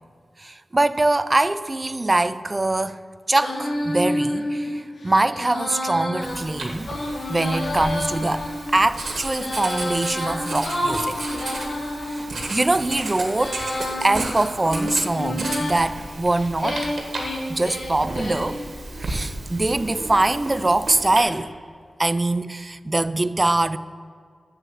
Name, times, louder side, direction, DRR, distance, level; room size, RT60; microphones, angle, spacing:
voice 1, 0.4-3.0 3.3-6.9 7.3-11.2 12.0-13.7 14.0-16.9 17.5-18.6 19.0-21.5 22.0-23.8, right 2 dB, 25° right, 0.3 m, -23 dB
Female singing, 3.3-12.2 12.8-15.8 16.3-18.6, left 1 dB, 75° left, 1.7 m, -29 dB
Writing, 6.2-21.2, right 2 dB, 60° right, 1.4 m, -34 dB
7.1 x 6.7 x 7.3 m
wide cardioid pair, 110°, 0 cm